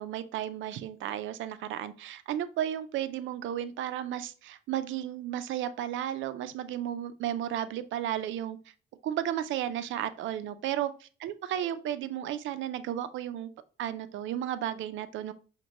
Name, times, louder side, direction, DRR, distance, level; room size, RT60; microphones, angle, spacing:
voice 1, 0.0-8.6 9.0-10.9 11.2-13.5 13.8-15.3, right 11 dB, 75° right, 12 dB, 0.4 m, -33 dB
6.2 x 2.2 x 2.9 m, 0.38 s
cardioid pair, 90°, 20 cm